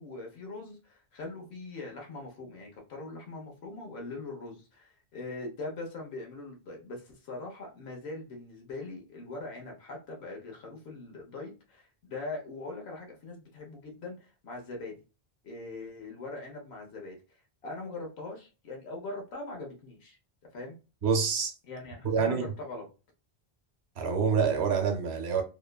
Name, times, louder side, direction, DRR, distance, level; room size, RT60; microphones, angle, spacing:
voice 1, 0.0-15.0 15.4-17.2 17.6-20.2 20.5-20.8 21.7-22.9, left 2 dB, 85° left, 1.1 m, -41 dB
voice 2, 21.0-21.5 22.0-22.4 24.0-25.4, right 6 dB, 80° right, 0.9 m, -26 dB
2.9 x 2.2 x 2.2 m
omnidirectional pair, 1.1 m